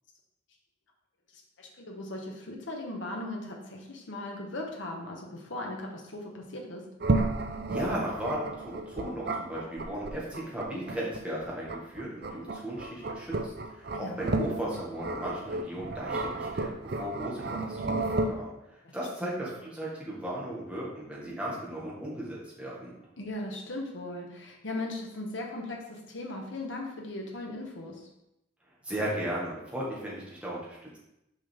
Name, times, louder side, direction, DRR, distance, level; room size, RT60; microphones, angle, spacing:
voice 1, 1.6-6.9 13.9-14.2 18.8-18.9 19.2-19.5 23.2-28.1, left 1 dB, 85° left, 0 dB, 1.3 m, -38 dB
sound 1, 7.0-18.3, right 2 dB, 55° right, 0.5 m, -32 dB
voice 2, 7.7-22.9 28.8-31.0, right 1 dB, 5° right, -6 dB, 1.7 m, -36 dB
6.2 x 5.4 x 3.5 m, 0.85 s
head